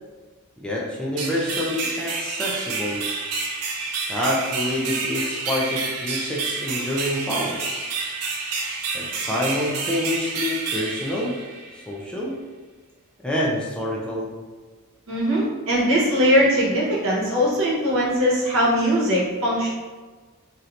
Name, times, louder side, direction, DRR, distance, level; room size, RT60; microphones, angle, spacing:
voice 1, 0.6-3.1 4.1-7.6 8.9-11.4 11.7-12.4 13.2-14.3, left 1 dB, 5° left, -4 dB, 0.4 m, -27 dB
sound 1, 1.2-11.9, right 4 dB, 90° right, 0.5 m, -29 dB
voice 2, 15.1-19.7, equal, 65° right, -6 dB, 1.0 m, -20 dB
3.1 x 2.8 x 2.5 m, 1.4 s
head